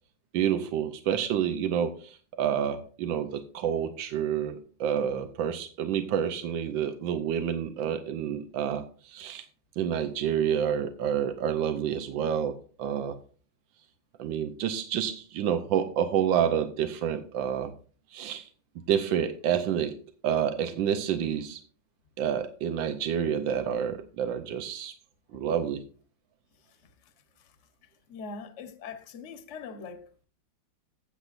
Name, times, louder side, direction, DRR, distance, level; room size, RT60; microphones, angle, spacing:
voice 1, 0.3-9.4 9.8-13.2 14.2-17.7 18.1-18.5 18.9-20.0 20.2-21.6 22.2-24.9 25.3-25.8, right 9 dB, 90° right, 1.5 m, -28 dB
voice 2, 27.8-30.3, left 5 dB, 45° left, 1.2 m, -43 dB
14.0 x 8.3 x 2.5 m
omnidirectional pair, 2.0 m